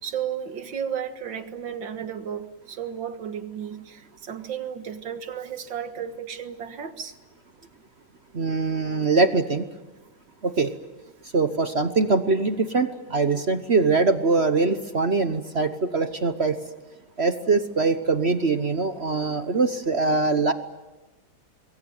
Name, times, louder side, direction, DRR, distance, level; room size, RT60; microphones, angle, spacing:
voice 1, 0.0-7.2, right 8 dB, 90° right, 9 dB, 2.3 m, -33 dB
voice 2, 8.3-9.6 10.4-10.7 11.3-16.6 17.2-20.5, right 3 dB, 40° right, 10 dB, 1.1 m, -22 dB
26.0 x 22.0 x 9.4 m, 1.1 s
omnidirectional pair, 2.0 m